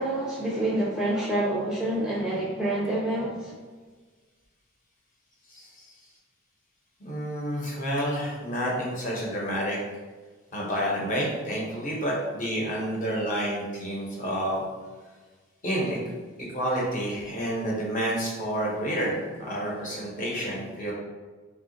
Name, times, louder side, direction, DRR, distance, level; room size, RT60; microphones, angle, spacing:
voice 1, 0.0-3.5, right 1 dB, 5° right, -6 dB, 0.4 m, -27 dB
voice 2, 5.5-5.8 7.0-9.8 10.5-14.6 15.6-16.0 16.4-20.9, equal, 40° left, -4 dB, 0.8 m, -29 dB
2.8 x 2.3 x 3.8 m, 1.4 s
head